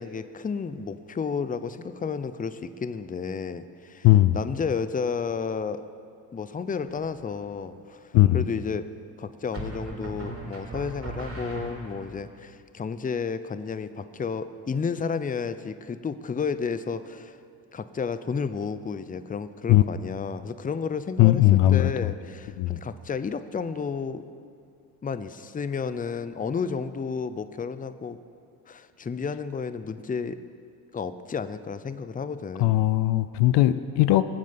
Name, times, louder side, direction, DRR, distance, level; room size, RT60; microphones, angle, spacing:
voice 1, 0.0-4.1 4.3-5.8 6.3-8.9 9.2-17.4 17.7-24.2 25.0-28.2 28.7-30.4 30.9-32.8, left 5 dB, 20° left, 12 dB, 0.6 m, -32 dB
voice 2, 4.0-4.4 8.1-8.4 19.7-19.8 21.2-22.1 22.6-22.8 32.6-34.2, left 15 dB, 75° left, 13 dB, 0.6 m, -19 dB
sound 1, 6.9-7.4 9.5-12.2, right 2 dB, 35° right, 3.6 m, -38 dB
18.5 x 7.5 x 5.8 m, 2.4 s
supercardioid pair, 65°, 42 cm